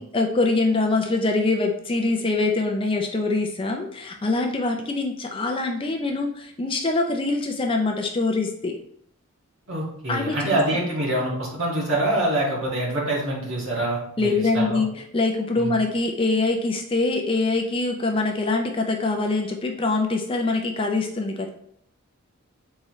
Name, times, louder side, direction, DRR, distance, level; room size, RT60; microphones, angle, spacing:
voice 1, 0.0-8.8 10.1-10.6 14.2-21.5, left 3 dB, 25° left, 2 dB, 0.4 m, -24 dB
voice 2, 9.7-14.8 15.6-15.8, right 1 dB, 60° right, -4 dB, 1.8 m, -25 dB
4.2 x 3.6 x 3.0 m, 0.68 s
head